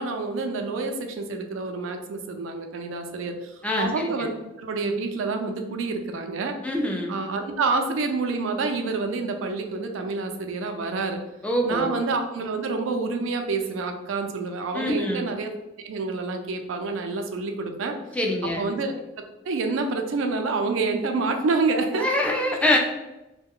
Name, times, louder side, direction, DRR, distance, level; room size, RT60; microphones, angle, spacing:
voice 1, 0.0-6.6 7.1-11.2 11.6-15.5 15.8-18.0 18.4-18.9 19.5-22.1, right 3 dB, 90° right, 5 dB, 0.4 m, -28 dB
voice 2, 3.6-4.3 6.6-7.1 11.4-11.9 14.7-15.2 18.1-18.7 21.9-22.8, left 1 dB, 5° left, 0 dB, 0.3 m, -24 dB
2.3 x 2.1 x 3.5 m, 0.97 s
head